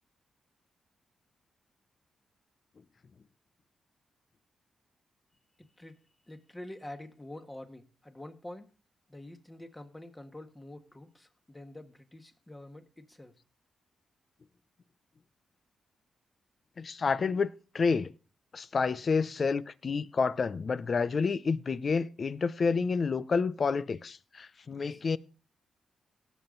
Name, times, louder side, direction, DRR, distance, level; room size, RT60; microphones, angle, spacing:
voice 1, 5.6-8.7 9.1-13.3 24.8-25.2, left 1 dB, 15° left, 1.6 m, -47 dB
voice 2, 16.8-17.5 17.7-18.1 18.5-25.2, left 5 dB, 45° left, 0.6 m, -29 dB
17.5 x 7.1 x 3.9 m
cardioid pair, 80°, 0 cm